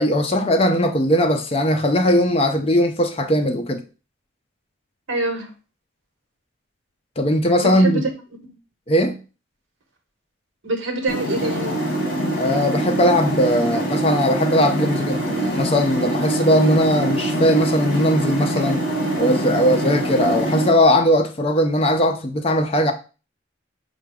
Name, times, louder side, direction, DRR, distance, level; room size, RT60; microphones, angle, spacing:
voice 1, 0.0-3.8 7.2-8.1 8.9-9.2 12.4-18.8 19.2-22.9, equal, 30° left, 0.4 m, -19 dB
voice 2, 5.1-5.5 7.6-8.1 8.4-8.5 10.6-11.8, right 2 dB, 80° right, 1.1 m, -25 dB
sound 1, 11.1-20.7, right 1 dB, 45° left, 1.5 m, -24 dB
5.0 x 2.2 x 4.8 m
head